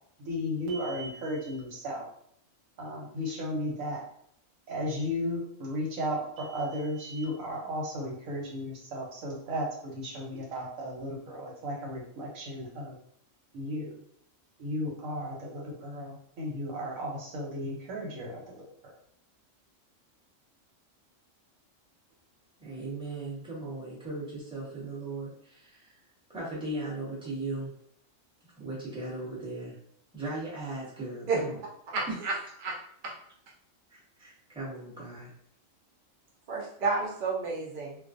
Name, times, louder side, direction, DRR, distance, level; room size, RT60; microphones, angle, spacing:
voice 1, 0.2-2.1 2.8-4.0 4.7-13.0 13.5-13.9 14.6-18.7, equal, 85° right, -1 dB, 1.2 m, -35 dB
voice 2, 22.6-26.0 26.3-27.7 28.6-29.7 30.1-31.6 32.1-32.3 33.9-35.3, right 2 dB, 5° right, -8 dB, 0.8 m, -37 dB
voice 3, 31.9-32.3 32.6-32.7 36.5-38.0, right 4 dB, 60° right, -3 dB, 0.5 m, -30 dB
2.4 x 2.2 x 2.5 m, 0.69 s
omnidirectional pair, 1.4 m